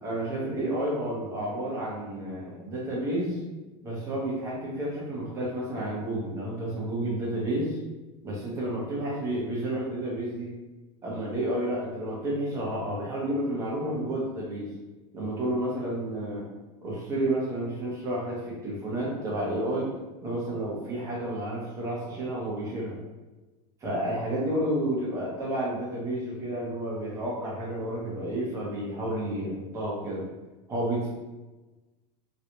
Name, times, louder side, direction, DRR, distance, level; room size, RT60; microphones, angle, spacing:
voice 1, 0.0-3.4 3.8-7.8 8.2-10.5 11.0-14.7 15.1-16.4 16.8-19.9 20.2-23.0 23.8-30.2 30.7-31.1, right 1 dB, 20° right, -5 dB, 1.0 m, -31 dB
3.2 x 3.0 x 2.8 m, 1.2 s
supercardioid pair, 160°, 16 cm